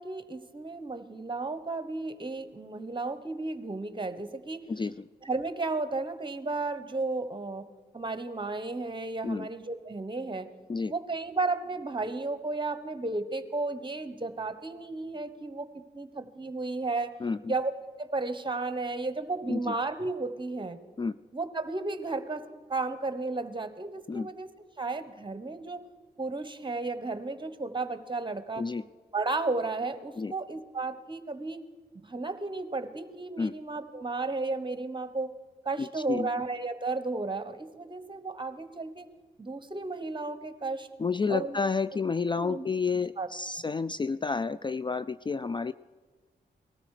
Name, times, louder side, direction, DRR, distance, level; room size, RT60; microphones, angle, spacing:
voice 1, 0.0-4.6 5.2-7.7 7.9-10.5 10.9-15.7 15.9-17.1 17.5-20.8 21.3-24.5 24.8-25.8 26.2-28.7 29.1-31.6 32.0-35.3 35.6-39.1 39.4-40.9 41.3-41.6 42.3-42.7 43.2-43.3, right 3 dB, 25° right, 11 dB, 1.3 m, -33 dB
voice 2, 4.7-5.0 9.2-9.5 10.7-10.9 17.2-17.5 19.5-19.8 21.0-21.2 24.1-24.3 28.6-28.8 30.2-30.3 33.4-33.5 35.8-36.3 41.0-45.7, left 4 dB, 25° left, 15 dB, 0.3 m, -30 dB
18.5 x 13.0 x 5.0 m, 1.5 s
cardioid pair, 55°, 18 cm